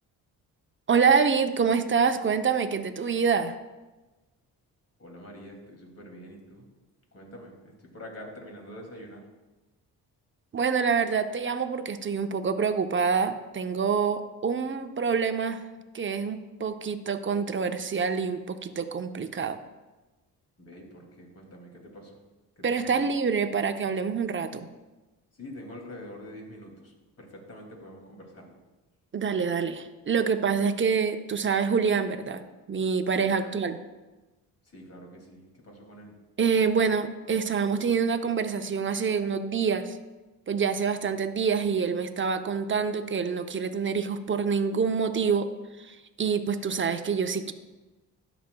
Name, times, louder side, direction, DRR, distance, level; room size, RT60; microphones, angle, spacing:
voice 1, 0.9-3.6 10.5-15.6 15.9-19.6 22.6-24.7 29.1-33.8 36.4-40.0 40.5-45.5 45.8-47.5, right 6 dB, 30° right, 8 dB, 0.7 m, -26 dB
voice 2, 5.0-6.7 7.1-9.3 20.6-22.2 22.6-23.1 25.3-28.6 33.1-33.6 34.6-36.2, equal, 40° left, 1 dB, 2.5 m, -46 dB
12.0 x 6.0 x 2.3 m, 1.1 s
supercardioid pair, 60°, 39 cm